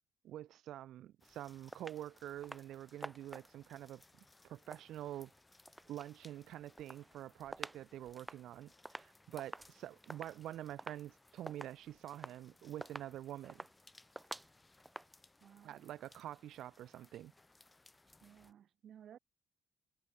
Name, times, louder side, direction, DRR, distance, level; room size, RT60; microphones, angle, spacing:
voice 1, 0.2-5.3 5.9-13.6 15.6-17.3, right 12 dB, 80° right, 0.9 m, -47 dB
sound 1, 1.2-18.5, left 2 dB, 20° left, 4.1 m, -66 dB
sound 2, 1.7-2.0 2.4-2.7 3.0-3.7 4.5-6.1 6.5-7.8 8.1-15.1, right 1 dB, 10° right, 0.4 m, -50 dB
voice 2, 15.4-15.9 18.2-19.2, right 9 dB, 65° right, 1.6 m, -58 dB
cardioid pair, 90°, 0 cm